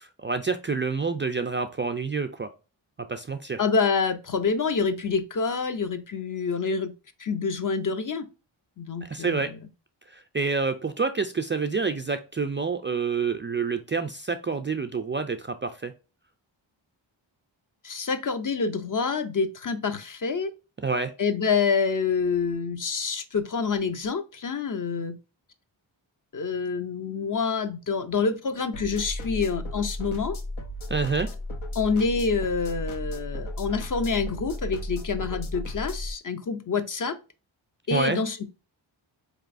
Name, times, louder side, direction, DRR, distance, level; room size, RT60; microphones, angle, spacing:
voice 1, 0.0-2.5 3.1-3.6 9.0-9.5 10.1-15.9 20.8-21.1 30.9-31.3 37.9-38.2, right 4 dB, 25° right, 0.3 m, -28 dB
voice 2, 3.6-6.9 7.2-8.3 8.8-9.5 17.8-20.5 21.2-25.2 26.3-30.4 31.7-37.2 37.9-38.4, left 5 dB, 40° left, 0.6 m, -27 dB
sound 1, 28.7-36.1, left 1 dB, 80° left, 0.8 m, -34 dB
4.0 x 3.0 x 2.4 m
cardioid pair, 60°, 48 cm